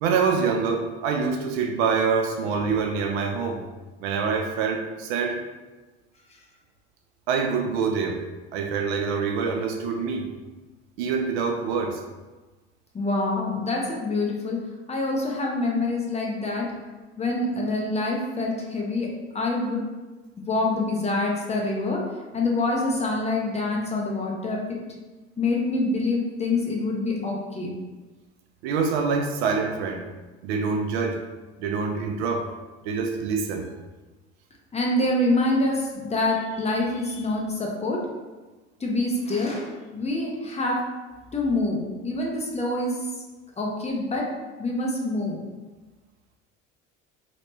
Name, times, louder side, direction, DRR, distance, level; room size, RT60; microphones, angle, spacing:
voice 1, 0.0-3.6 4.0-5.4 7.3-8.2 8.5-10.3 11.0-12.0 28.6-30.0 30.4-31.2 31.6-32.5 32.9-33.7, right 5 dB, 75° right, 3 dB, 0.5 m, -25 dB
voice 2, 12.9-14.6 14.9-16.7 17.2-19.1 19.3-19.8 20.5-22.0 22.3-24.6 25.4-27.7 34.7-38.1 38.8-40.8 41.3-42.9 43.6-44.3 44.6-45.4, left 2 dB, 20° left, -1 dB, 0.6 m, -26 dB
3.0 x 2.1 x 3.0 m, 1.2 s
hypercardioid pair, 75°, 32 cm